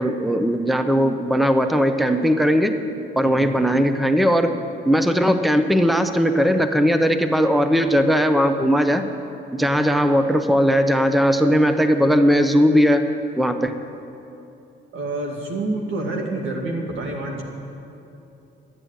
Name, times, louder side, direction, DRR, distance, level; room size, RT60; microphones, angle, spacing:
voice 1, 0.0-2.8 3.2-4.6 4.9-9.1 9.5-13.0 13.4-13.8, equal, ahead, 8 dB, 0.7 m, -18 dB
voice 2, 3.2-3.5 14.9-17.4, right 2 dB, 85° right, 1 dB, 2.3 m, -28 dB
12.5 x 8.7 x 9.4 m, 2.8 s
cardioid pair, 90°, 20 cm